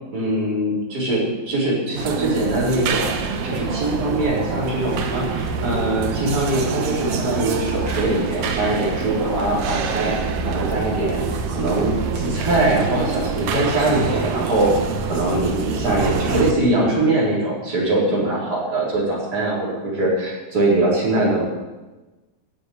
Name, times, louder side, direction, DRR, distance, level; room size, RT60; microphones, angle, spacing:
voice 1, 0.1-3.1 3.4-10.2 10.4-21.4, right 2 dB, 25° right, -5 dB, 4.4 m, -22 dB
sound 1, 1.9-16.5, right 5 dB, 80° right, 1.4 m, -26 dB
11.0 x 7.2 x 9.6 m, 1.2 s
omnidirectional pair, 4.4 m